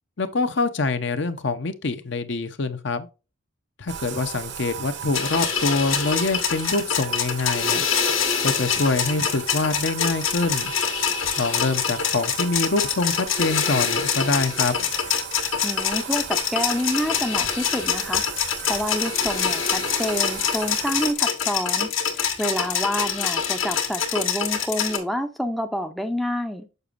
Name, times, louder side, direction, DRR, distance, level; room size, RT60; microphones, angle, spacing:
voice 1, 0.2-3.1 3.8-7.8 8.4-10.7 11.4-14.8, left 3 dB, 60° left, 0.7 m, -25 dB
Bathtub (filling or washing), 3.9-21.1, right 8 dB, 55° right, 0.8 m, -36 dB
sound 1, 5.1-25.0, left 7 dB, 80° left, 1.5 m, -25 dB
voice 2, 15.6-18.3 18.7-26.7, equal, ahead, 0.5 m, -28 dB
6.7 x 5.9 x 2.5 m
head